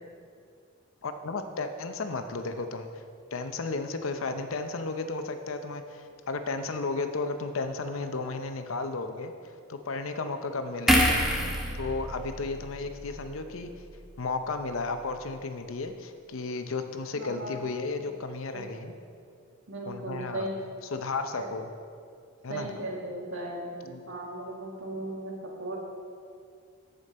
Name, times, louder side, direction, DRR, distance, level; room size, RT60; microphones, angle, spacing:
voice 1, 1.0-3.0 3.3-9.3 9.7-11.2 11.7-13.7 14.2-18.9 19.8-20.5 20.9-21.7 22.4-22.7 23.8-24.0, left 3 dB, 80° left, 8 dB, 0.6 m, -33 dB
sound 1, 10.9-14.2 14.6-14.8, equal, ahead, 0.9 m, -28 dB
voice 2, 17.1-17.5 18.5-18.6 19.7-20.6 21.4-21.5 22.5-25.8, right 1 dB, 75° right, -2 dB, 1.7 m, -37 dB
14.0 x 5.2 x 4.2 m, 2.3 s
head